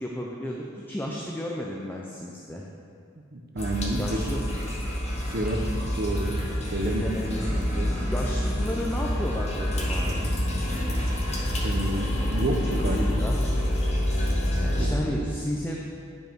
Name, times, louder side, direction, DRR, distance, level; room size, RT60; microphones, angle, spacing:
voice 1, 0.0-2.6 4.0-4.4 6.8-7.5 8.0-10.3 12.8-13.4 14.8-15.8, equal, 10° left, -2 dB, 0.5 m, -33 dB
voice 2, 3.3-4.2 5.3-5.7 6.0-6.4 6.7-7.0 7.8-7.9 11.6-13.1 14.8-15.0, right 1 dB, 45° right, 3 dB, 0.8 m, -29 dB
sound 1, 3.6-14.9, equal, 30° left, 1.0 m, -28 dB
sound 2, 4.5-5.7 7.3-8.5 10.4-11.7, equal, 10° right, 2.2 m, -44 dB
sound 3, 5.2-15.0, equal, 85° left, 1.9 m, -34 dB
9.2 x 5.4 x 4.5 m, 2.3 s
head